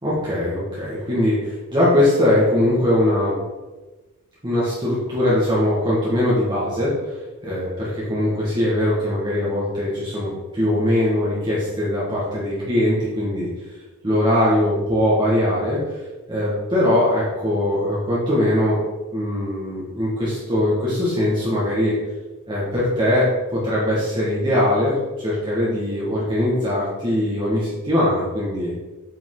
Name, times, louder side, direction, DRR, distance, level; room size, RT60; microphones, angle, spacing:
voice 1, 0.0-3.4 4.4-13.5 14.0-16.0 16.3-18.8 19.1-21.9 22.5-28.7, left 1 dB, 20° right, -8 dB, 1.6 m, -21 dB
7.9 x 5.3 x 3.8 m, 1.2 s
head